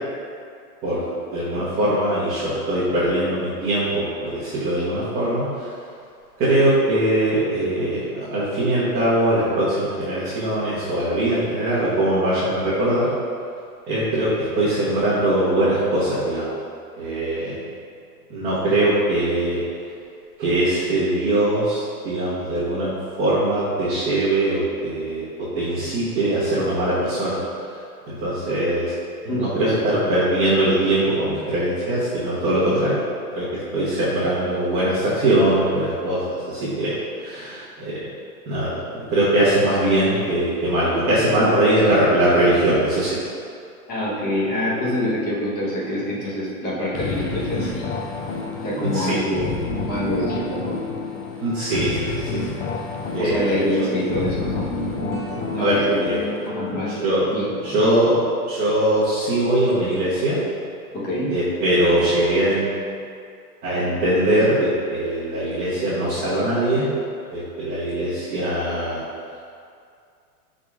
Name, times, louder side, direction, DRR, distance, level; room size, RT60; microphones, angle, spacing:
voice 1, 0.8-5.7 6.4-13.1 13.9-14.3 14.6-16.5 17.0-17.6 18.3-19.6 20.4-22.9 23.2-27.4 28.1-28.9 29.2-33.0 33.3-36.2 36.5-36.9 37.2-38.0 38.4-38.7 39.1-43.2 48.8-49.2 51.4-52.4 53.1-53.6 55.6-56.2 56.9-57.2 57.6-58.1 58.5-60.4 61.3-62.7 63.6-66.9 67.3-69.0, right 1 dB, 20° right, -13 dB, 1.1 m, -21 dB
voice 2, 29.3-29.9 41.3-41.5 43.9-47.9 48.6-49.5 49.8-50.8 53.2-54.7 55.5-56.0 56.4-57.0 57.3-57.8 58.0-58.2 60.9-61.4, left 1 dB, 20° left, -7 dB, 1.0 m, -26 dB
sound 1, 46.9-56.5, left 4 dB, 45° left, 0.7 m, -30 dB
sound 2, 54.2-60.9, left 1 dB, 60° right, 1.1 m, -36 dB
5.8 x 3.8 x 2.4 m, 2.3 s
hypercardioid pair, 145°, 46 cm